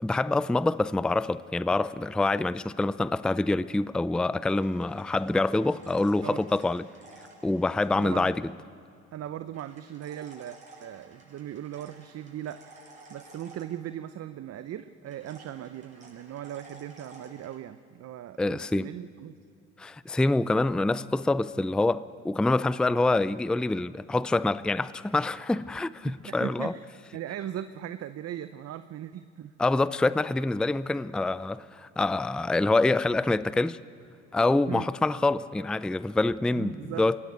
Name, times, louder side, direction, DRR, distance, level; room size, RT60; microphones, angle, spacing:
voice 1, 0.0-6.8 7.4-8.4 18.4-18.9 19.8-26.7 29.6-33.8 34.3-37.2, left 2 dB, 5° left, 17 dB, 0.4 m, -26 dB
sound 1, 4.5-8.3 9.5-14.2 15.1-17.6, right 2 dB, 20° right, 7.3 m, -53 dB
voice 2, 7.9-8.3 9.1-19.3 26.2-26.9 27.1-29.5 34.7-34.9 36.5-37.1, right 11 dB, 50° right, 12 dB, 0.7 m, -39 dB
23.0 x 17.0 x 8.0 m, 2.6 s
hypercardioid pair, 65°, 32 cm